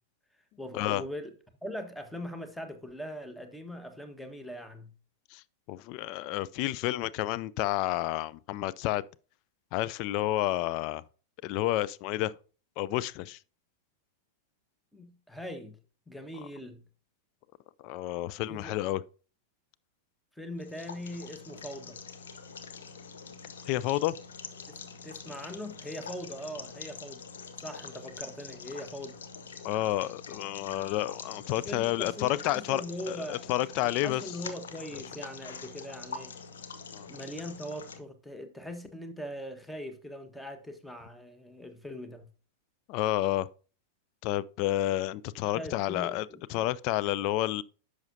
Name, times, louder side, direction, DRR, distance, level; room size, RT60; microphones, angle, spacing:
voice 1, 0.6-1.3 1.6-4.9 14.9-15.8 16.1-16.8 18.5-18.8 20.4-22.0 24.7-27.2 27.6-29.2 31.5-33.6 34.0-36.3 37.1-42.3 45.4-46.7, equal, 5° left, 1.3 m, -41 dB
voice 2, 5.7-9.0 9.7-11.0 11.4-12.3 12.8-13.4 17.8-19.0 23.7-24.2 29.6-34.2 36.9-37.1 42.9-43.5 44.2-47.6, left 15 dB, 45° left, 0.4 m, -30 dB
sound 1, 20.6-38.0, left 5 dB, 65° left, 0.9 m, -45 dB
10.5 x 6.4 x 2.7 m
figure-of-eight pair, 95°, 0 cm